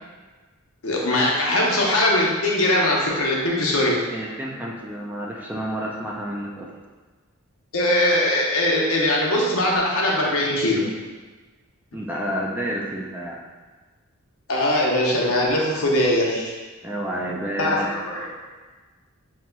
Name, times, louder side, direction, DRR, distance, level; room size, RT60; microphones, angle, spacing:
voice 1, 0.8-4.0 7.7-10.8 14.5-16.5 17.6-18.3, left 1 dB, 75° left, -2 dB, 0.8 m, -21 dB
voice 2, 4.1-6.7 11.9-13.4 16.8-17.9, right 1 dB, 10° right, -2 dB, 0.4 m, -30 dB
5.7 x 2.9 x 2.2 m, 1.3 s
head